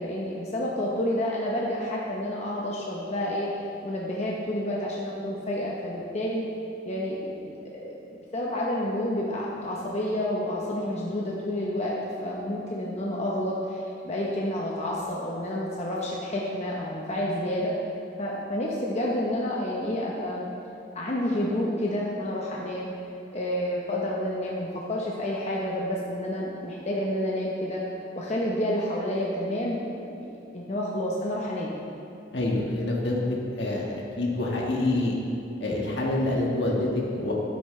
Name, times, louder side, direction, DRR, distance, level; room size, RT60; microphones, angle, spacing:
voice 1, 0.0-3.5 3.8-6.4 6.8-7.9 8.3-17.7 18.2-20.5 20.9-22.9 23.3-27.8 28.2-29.8 30.2-31.8, left 1 dB, 40° left, -4 dB, 0.9 m, -29 dB
voice 2, 32.3-35.1 35.6-37.3, left 2 dB, 70° left, -3 dB, 1.6 m, -27 dB
12.5 x 8.0 x 3.3 m, 2.7 s
head